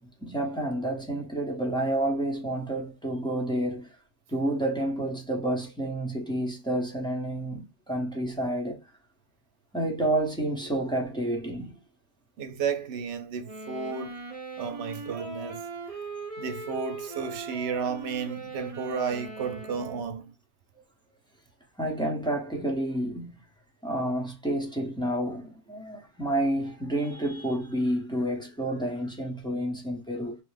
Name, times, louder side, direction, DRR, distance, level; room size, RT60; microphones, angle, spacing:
voice 1, 0.0-3.9 4.3-8.8 9.7-11.8 21.8-23.4 23.8-30.4, right 1 dB, 5° left, 0.7 m, -29 dB
voice 2, 12.4-14.2 14.6-15.7 16.4-20.3, right 6 dB, 80° right, 0.9 m, -32 dB
sound 1, 13.4-20.2, right 3 dB, 35° right, 0.8 m, -40 dB
3.1 x 2.0 x 3.2 m
omnidirectional pair, 1.2 m